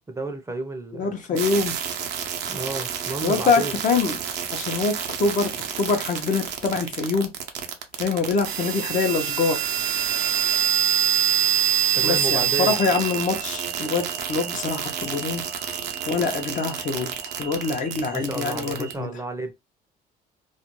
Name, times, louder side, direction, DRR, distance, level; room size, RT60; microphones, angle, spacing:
voice 1, 0.0-1.1 2.5-3.7 11.9-12.7 18.1-19.5, right 3 dB, 15° right, 0.5 m, -31 dB
voice 2, 0.9-1.8 3.2-4.2 4.5-5.5 5.8-7.3 8.0-9.7 12.0-15.4 16.1-17.1 17.4-19.1, left 4 dB, 50° left, 0.7 m, -24 dB
sound 1, 1.4-18.9, right 9 dB, 85° right, 0.6 m, -27 dB
2.4 x 2.1 x 2.9 m
cardioid pair, 110°, 17 cm